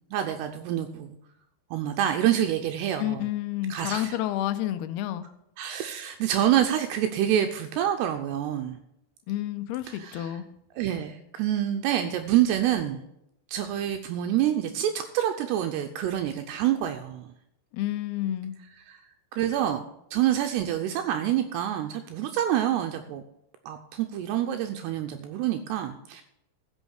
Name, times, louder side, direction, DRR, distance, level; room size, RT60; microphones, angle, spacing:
voice 1, 0.1-1.2 1.7-3.2 3.7-4.2 5.6-8.8 9.9-10.3 10.8-13.0 13.5-17.3 18.9-19.0 19.3-19.8 20.1-23.2 23.7-26.2, right 11 dB, 80° right, 6 dB, 2.7 m, -27 dB
voice 2, 3.0-5.3 9.3-10.5 17.7-18.6, left 13 dB, 80° left, 10 dB, 2.5 m, -30 dB
15.0 x 6.4 x 6.4 m, 0.82 s
omnidirectional pair, 4.9 m